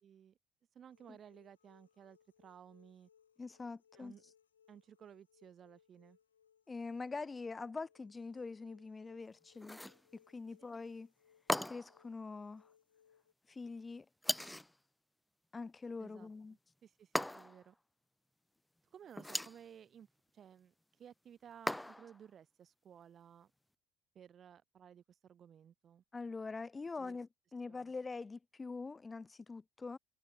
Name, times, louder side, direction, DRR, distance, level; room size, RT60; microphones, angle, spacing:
voice 1, 0.0-0.4 0.7-3.1 4.0-4.2 4.7-6.2 16.0-16.3 16.8-17.8 18.9-20.1 20.3-23.5 24.1-26.0 27.0-27.2 27.7-27.9, right 8 dB, 45° right, 2.7 m, -57 dB
sound 1, 0.9-13.3, left 8 dB, 85° left, 2.7 m, -70 dB
voice 2, 3.4-4.1 6.7-9.8 10.3-11.1 11.6-12.7 13.5-14.1 15.5-16.5 26.1-30.0, left 4 dB, 25° left, 1.5 m, -44 dB
sound 2, 9.6-10.0 11.5-12.0 14.2-14.7 17.2-17.7 19.1-19.6 21.7-22.2, left 1 dB, 5° left, 0.4 m, -38 dB
figure-of-eight pair, 55°, 0 cm